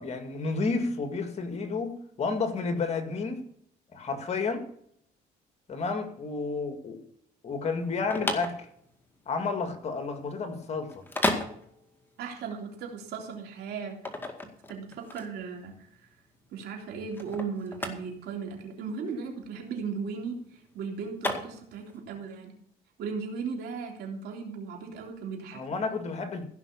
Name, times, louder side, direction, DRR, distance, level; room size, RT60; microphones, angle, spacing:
voice 1, 0.0-3.4 3.9-4.6 5.7-7.0 7.4-8.7 9.3-11.0 25.5-26.4, left 4 dB, 40° left, 2.2 m, -31 dB
sound 1, 7.8-22.0, left 1 dB, 10° left, 2.0 m, -35 dB
voice 2, 12.2-14.0 14.7-16.1 16.5-22.5 23.0-25.8, right 5 dB, 75° right, 3.4 m, -37 dB
16.0 x 5.9 x 7.1 m
cardioid pair, 110°, 17 cm